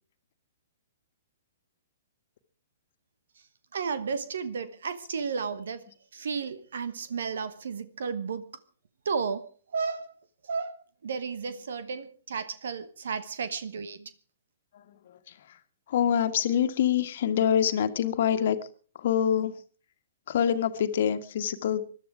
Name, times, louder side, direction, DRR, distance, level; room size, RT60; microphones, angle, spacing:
voice 1, 3.7-5.8 6.1-8.5 9.0-9.4 9.7-10.1 10.5-10.8 11.0-14.1, right 5 dB, 70° right, 1.1 m, -33 dB
voice 2, 14.7-15.6 15.9-18.6 18.9-19.5 20.3-21.8, left 9 dB, 55° left, 1.6 m, -26 dB
21.5 x 12.0 x 4.9 m
hypercardioid pair, 120°, 0 cm